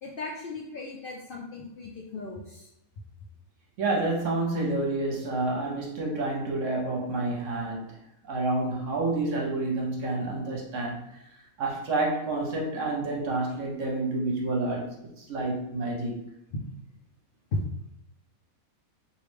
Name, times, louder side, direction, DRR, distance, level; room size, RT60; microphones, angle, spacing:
voice 1, 0.0-2.7 17.5-17.6, left 2 dB, 70° left, -2 dB, 0.5 m, -36 dB
voice 2, 3.8-8.0 8.2-11.2 11.6-16.2, right 2 dB, 65° right, -1 dB, 1.1 m, -29 dB
3.1 x 2.6 x 3.3 m, 0.82 s
omnidirectional pair, 1.5 m